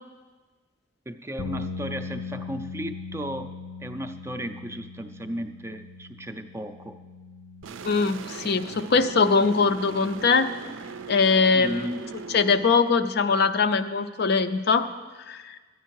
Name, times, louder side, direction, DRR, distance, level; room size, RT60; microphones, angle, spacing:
voice 1, 1.1-3.5 3.8-7.0 11.5-12.0, equal, 15° right, 7 dB, 0.4 m, -35 dB
sound 1, 1.4-7.6, left 4 dB, 80° left, 1.1 m, -39 dB
sound 2, 7.6-12.7, right 4 dB, 80° right, 0.4 m, -39 dB
voice 2, 7.8-10.5 11.1-11.9 12.3-14.8 15.3-15.6, left 4 dB, 55° left, 10 dB, 0.5 m, -22 dB
13.0 x 10.0 x 4.7 m, 1.3 s
head